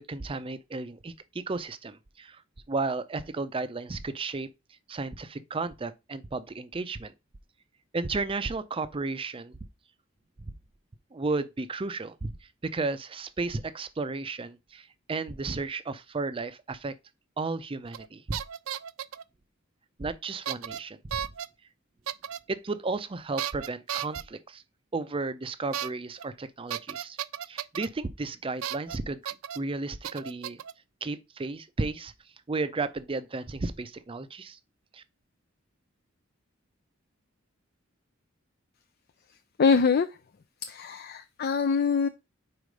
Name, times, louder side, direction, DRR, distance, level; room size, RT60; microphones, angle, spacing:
voice 1, 0.0-2.4 2.7-4.5 4.9-7.1 7.9-9.6 11.1-12.3 12.6-16.9 17.4-18.4 20.0-21.3 22.5-24.6 24.9-27.2 27.5-29.2 29.6-30.6 31.0-32.1 32.5-34.6 34.9-35.0, right 3 dB, 25° right, 0.5 m, -33 dB
sound 1, 17.9-18.1 18.3-19.2 20.5-20.8 21.1-21.5 22.1-22.4 23.4-24.2 25.7-25.9 26.2-26.3 26.7-27.9 28.6-29.0 29.3-29.6 30.0-30.7, right 10 dB, 85° right, 0.4 m, -34 dB
voice 2, 39.6-40.2 40.6-42.1, left 5 dB, 50° left, 0.4 m, -24 dB
4.9 x 4.3 x 5.1 m
head